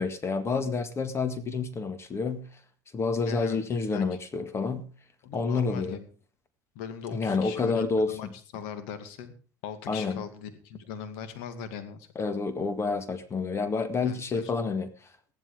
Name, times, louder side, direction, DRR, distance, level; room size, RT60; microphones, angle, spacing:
voice 1, 0.0-2.5 2.9-4.9 5.3-6.0 7.1-8.2 9.9-10.2 12.2-14.9, left 4 dB, 30° left, 11 dB, 1.9 m, -29 dB
voice 2, 3.2-4.2 5.2-6.1 6.7-8.3 8.5-9.3 9.6-12.1 14.0-14.8, left 7 dB, 70° left, 9 dB, 2.4 m, -40 dB
15.0 x 12.0 x 5.0 m, 0.37 s
supercardioid pair, 90°, 9 cm